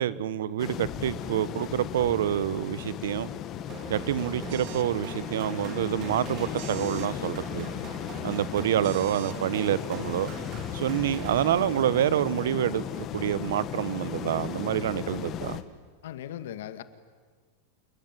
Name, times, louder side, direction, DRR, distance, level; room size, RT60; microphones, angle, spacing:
voice 1, 0.0-3.3 3.9-7.7 8.2-10.3 10.7-15.6, right 11 dB, 80° right, 18 dB, 1.1 m, -27 dB
sound 1, 0.6-15.6, left 10 dB, 30° left, 1.5 m, -36 dB
sound 2, 3.7-12.0, right 6 dB, 35° right, 3.5 m, -43 dB
sound 3, 4.5-4.9 6.5-7.1 8.8-9.4, right 16 dB, 50° right, 1.2 m, -45 dB
voice 2, 16.0-16.8, left 11 dB, 75° left, 11 dB, 2.1 m, -38 dB
28.0 x 22.0 x 9.3 m, 1.5 s
supercardioid pair, 155°, 0 cm